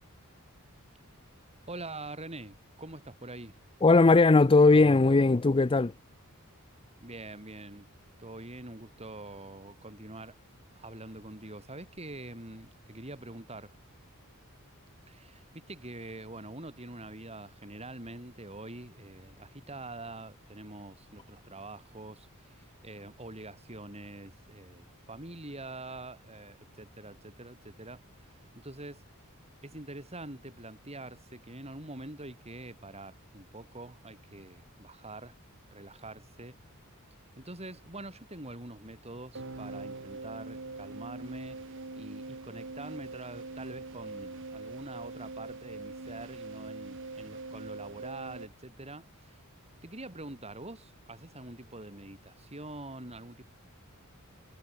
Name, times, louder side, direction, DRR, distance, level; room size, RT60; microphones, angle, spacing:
voice 1, 1.7-3.6 7.0-7.9 8.2-10.4 10.7-13.7 15.1-29.0 29.6-35.4 35.7-36.6 37.4-49.4 49.8-53.4, right 2 dB, 30° right, 8.0 m, -45 dB
voice 2, 3.8-5.9, left 3 dB, 25° left, 0.5 m, -19 dB
sound 1, 39.4-48.5, right 3 dB, 60° right, 1.9 m, -42 dB
head